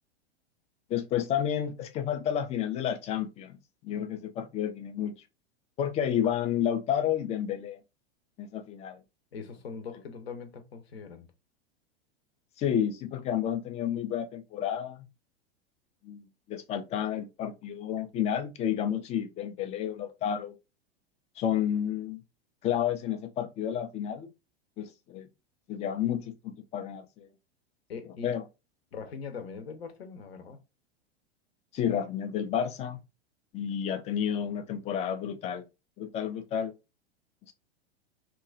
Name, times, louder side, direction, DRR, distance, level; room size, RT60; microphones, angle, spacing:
voice 1, 0.9-5.1 5.8-7.8 8.4-9.0 12.6-15.1 16.0-20.5 21.4-22.2 22.6-24.3 24.8-25.3 25.7-27.3 28.2-28.4 31.7-33.0 33.5-35.6 36.0-36.7, left 9 dB, 20° left, 0.4 m, -31 dB
voice 2, 9.3-11.3 27.9-28.4 28.9-30.6, left 5 dB, 70° left, 0.7 m, -41 dB
2.9 x 2.3 x 2.4 m
figure-of-eight pair, 90°, 32 cm